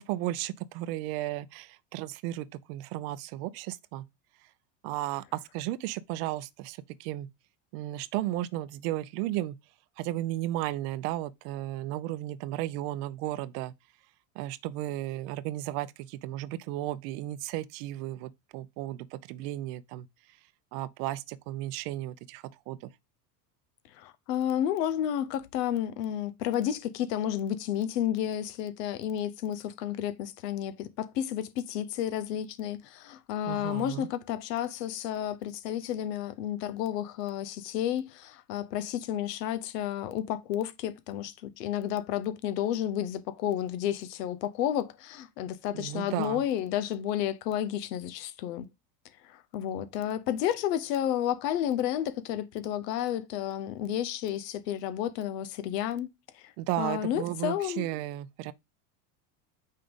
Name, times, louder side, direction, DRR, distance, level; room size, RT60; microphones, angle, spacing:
voice 1, 0.0-4.1 4.8-7.3 7.7-9.6 10.0-13.7 14.3-20.1 20.7-22.9 33.5-34.1 45.7-46.4 56.6-58.5, right 15 dB, 70° right, 0.7 m, -34 dB
voice 2, 23.9-48.7 49.2-56.1 56.3-57.9, left 11 dB, 90° left, 0.9 m, -31 dB
5.6 x 3.8 x 5.1 m
supercardioid pair, 110°, 47 cm